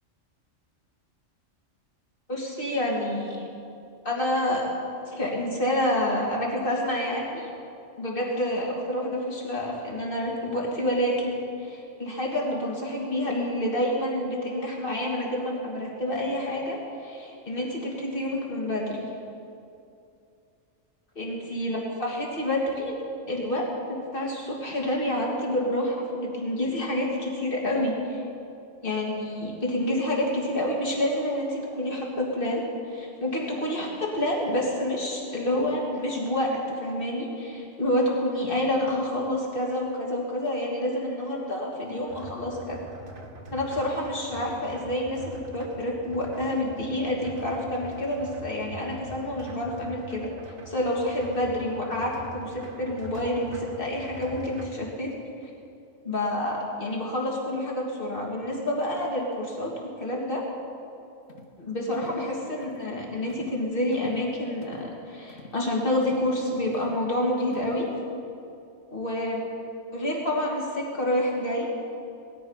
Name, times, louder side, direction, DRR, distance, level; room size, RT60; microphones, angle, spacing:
voice 1, 2.3-3.4 4.0-4.7 5.1-7.5 8.0-16.8 17.5-19.0 21.2-23.0 23.3-28.2 28.8-42.8 43.5-50.3 50.7-55.1 56.0-60.4 61.6-67.9 68.9-69.5 69.9-71.7, left 1 dB, 45° left, -2 dB, 2.8 m, -28 dB
sound 1, 42.1-54.7, right 2 dB, 75° right, 1.9 m, -44 dB
sound 2, 61.3-61.6 61.9-62.2 62.6-62.9 63.3-63.6 63.9-64.3 64.6-64.9 65.3-65.6 66.0-66.3 66.7-67.1 67.5-67.9, left 3 dB, 75° left, 1.7 m, -46 dB
19.5 x 13.0 x 5.7 m, 2.5 s
omnidirectional pair, 1.3 m